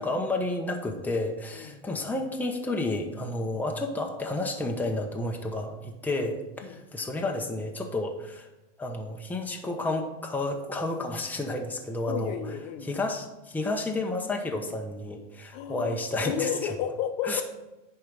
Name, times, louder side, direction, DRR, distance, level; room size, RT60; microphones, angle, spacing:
voice 1, 0.0-8.5 8.8-12.3 12.8-16.5 17.2-17.4, left 2 dB, 5° left, 2 dB, 1.0 m, -31 dB
voice 2, 1.5-1.9 6.6-6.8 12.1-12.9 15.5-17.4, left 8 dB, 55° left, 7 dB, 1.0 m, -33 dB
10.0 x 4.6 x 5.3 m, 1.0 s
hypercardioid pair, 115°, 36 cm